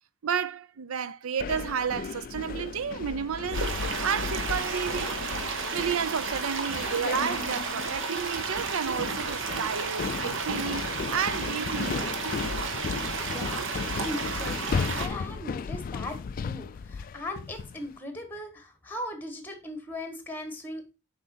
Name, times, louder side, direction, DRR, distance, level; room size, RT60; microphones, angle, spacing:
voice 1, 0.2-5.5 5.7-12.4, right 7 dB, 75° right, 0.5 m, -32 dB
sound 1, 1.4-17.9, left 5 dB, 40° left, 0.3 m, -35 dB
sound 2, 3.5-15.1, right 4 dB, 60° right, 1.2 m, -32 dB
voice 2, 13.3-20.9, left 1 dB, 10° left, 1.3 m, -38 dB
7.1 x 5.1 x 4.3 m
head